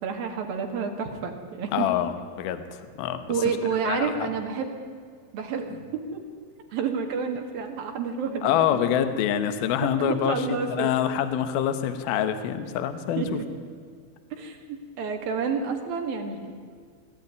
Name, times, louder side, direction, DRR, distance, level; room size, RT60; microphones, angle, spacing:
voice 1, 0.0-1.9 3.3-4.7 5.3-6.2 6.7-8.8 10.0-10.9 13.2-13.4 14.3-16.5, right 6 dB, 60° right, 3 dB, 3.2 m, -29 dB
voice 2, 1.7-3.2 3.9-4.3 8.4-13.4, left 9 dB, 70° left, 10 dB, 2.5 m, -26 dB
20.5 x 14.0 x 9.5 m, 2.1 s
omnidirectional pair, 5.6 m